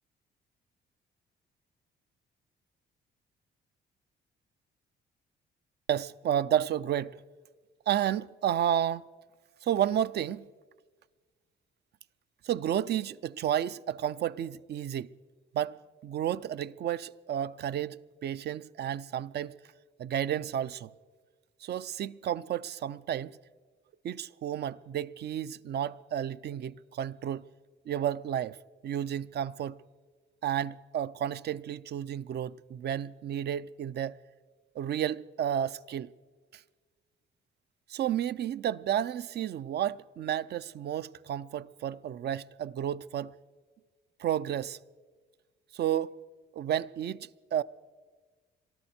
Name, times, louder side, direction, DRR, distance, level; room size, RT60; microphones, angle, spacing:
voice 1, 5.9-7.2 7.9-9.0 9.6-10.5 12.4-15.1 15.5-15.8 16.0-19.6 20.0-20.9 21.6-23.3 24.0-27.4 27.9-28.6 28.8-29.8 30.4-34.2 34.8-36.1 37.9-43.3 44.2-44.8 45.7-46.1 46.6-47.6, right 10 dB, 55° right, 0.5 m, -31 dB
23.0 x 14.0 x 4.3 m
cardioid pair, 90°, 20 cm